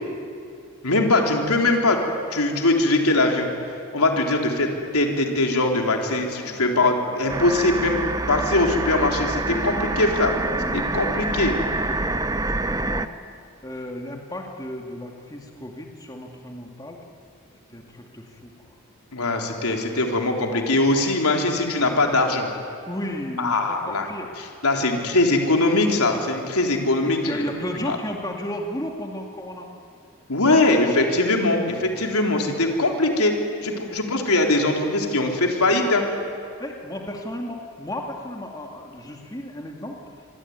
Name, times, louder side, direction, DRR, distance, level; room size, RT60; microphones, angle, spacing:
voice 1, 0.8-2.0 2.3-3.5 3.9-10.3 10.7-11.5 19.1-22.5 23.4-24.1 24.6-27.4 27.8-28.0 30.3-33.4 33.6-36.1, left 2 dB, 85° left, 2 dB, 3.8 m, -21 dB
voice 2, 6.3-6.7 10.6-11.1 12.0-12.3 12.7-13.1 13.6-17.0 17.7-18.8 20.7-20.8 22.9-24.3 27.0-29.7 31.9-32.1 33.7-33.8 36.6-40.0, equal, 15° left, 1 dB, 2.3 m, -34 dB
sound 1, 7.3-13.1, right 2 dB, 15° right, 0.7 m, -26 dB
26.0 x 24.0 x 9.6 m, 2.4 s
head